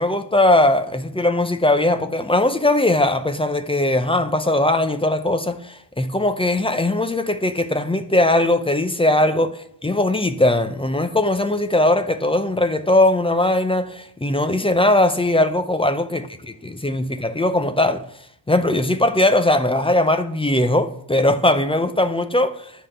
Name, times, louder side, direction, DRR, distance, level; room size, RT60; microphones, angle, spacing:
voice 1, 0.0-16.3 16.6-18.0 18.5-22.7, left 1 dB, 15° left, 0.4 m, -19 dB
9.8 x 3.6 x 6.6 m
wide cardioid pair, 150°, 46 cm